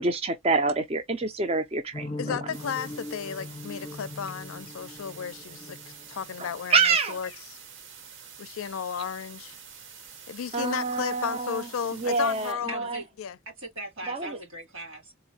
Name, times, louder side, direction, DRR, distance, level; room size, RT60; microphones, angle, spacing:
voice 1, 0.0-2.4 6.4-7.2 10.5-11.6 11.9-13.0 14.1-14.4, right 4 dB, 30° right, 0.4 m, -27 dB
sound 1, 1.9-6.7, left 2 dB, 35° left, 0.6 m, -40 dB
voice 2, 2.2-5.8 6.1-7.6 8.4-9.6 10.3-12.9 13.2-13.4, left 7 dB, 80° left, 0.4 m, -34 dB
sound 2, 2.5-12.5, right 7 dB, 65° right, 0.8 m, -47 dB
voice 3, 12.7-13.0 13.6-15.1, right 2 dB, 80° right, 2.4 m, -39 dB
3.9 x 2.0 x 2.7 m
head